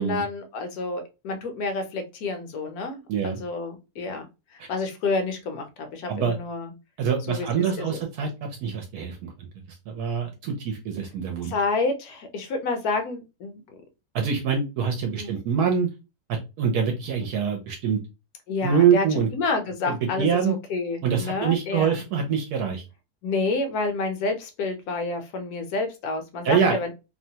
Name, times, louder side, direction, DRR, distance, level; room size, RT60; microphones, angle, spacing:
voice 1, 0.0-4.3 4.7-6.7 7.3-7.5 7.8-8.0 11.4-13.6 15.2-15.4 18.5-19.1 19.3-22.0 23.2-26.9, left 3 dB, 70° left, 5 dB, 1.1 m, -29 dB
voice 2, 3.1-3.4 6.1-6.4 7.0-9.3 9.9-11.6 14.1-15.9 16.3-18.0 18.6-19.3 19.9-20.6 21.0-22.8 26.4-26.8, right 7 dB, 75° right, 3 dB, 1.1 m, -24 dB
2.9 x 2.1 x 2.7 m, 0.27 s
omnidirectional pair, 1.7 m